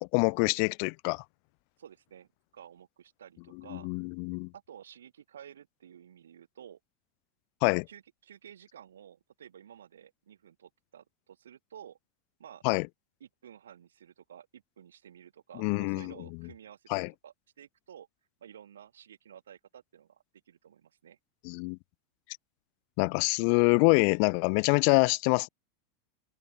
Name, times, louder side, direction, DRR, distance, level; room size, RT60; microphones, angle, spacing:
voice 1, 0.1-1.2 3.7-4.5 7.6-7.9 12.6-12.9 15.6-16.1 16.9-17.1 21.4-21.8 23.0-25.5, left 40 dB or more, 60° left, 1.0 m, -25 dB
voice 2, 1.8-3.9 4.5-6.8 7.9-12.0 12.4-12.6 13.2-18.1 18.4-21.2, right 9 dB, 85° right, 7.8 m, -52 dB
hypercardioid pair, 100°, 0 cm